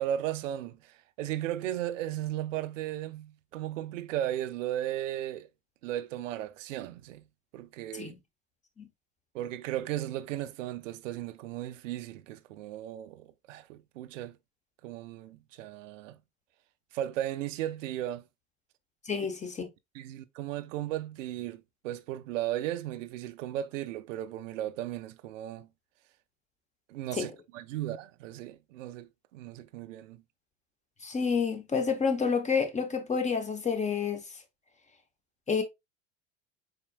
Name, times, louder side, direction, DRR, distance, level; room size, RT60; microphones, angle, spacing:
voice 1, 0.0-5.5 5.8-7.2 7.5-8.2 9.3-14.4 14.8-16.2 16.9-18.2 19.9-25.7 26.9-30.2, right 12 dB, 85° right, 0.6 m, -36 dB
voice 2, 19.1-19.7 27.2-27.3 31.0-34.2 35.5-35.6, left 5 dB, 20° left, 0.9 m, -29 dB
4.3 x 4.1 x 2.3 m
hypercardioid pair, 100°, 37 cm